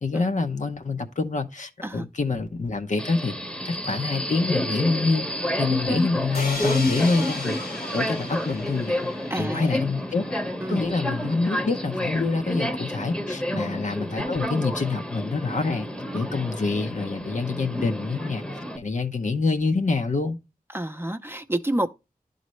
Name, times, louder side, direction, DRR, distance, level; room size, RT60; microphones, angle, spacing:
voice 1, 0.0-3.3 3.6-5.3 5.6-7.6 7.9-9.0 9.4-10.2 10.7-15.9 16.1-18.4 18.8-20.4, left 3 dB, 55° left, 0.8 m, -26 dB
Subway metro underground, 3.0-18.8, equal, 5° left, 1.0 m, -30 dB
sound 1, 6.3-10.2, left 3 dB, 80° left, 2.3 m, -36 dB
voice 2, 9.3-9.7 10.6-10.8 13.5-13.8 20.7-21.9, right 1 dB, 15° right, 0.7 m, -28 dB
11.0 x 4.0 x 3.1 m
cardioid pair, 45°, 15 cm